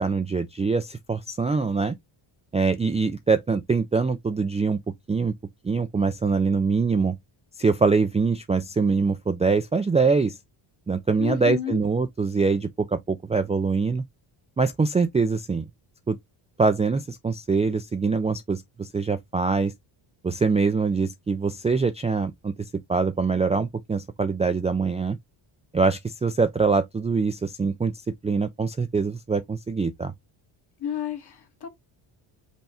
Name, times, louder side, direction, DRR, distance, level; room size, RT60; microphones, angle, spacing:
voice 1, 0.0-2.0 2.5-4.8 5.1-5.3 5.6-7.2 7.6-10.4 10.9-14.0 14.6-15.6 16.1-16.2 16.6-19.7 20.2-25.2 25.7-27.9 28.2-30.1, right 4 dB, 15° right, 0.3 m, -24 dB
voice 2, 11.2-11.8 30.8-31.7, left 10 dB, 50° left, 1.6 m, -31 dB
5.6 x 2.2 x 4.2 m
cardioid pair, 85°, 49 cm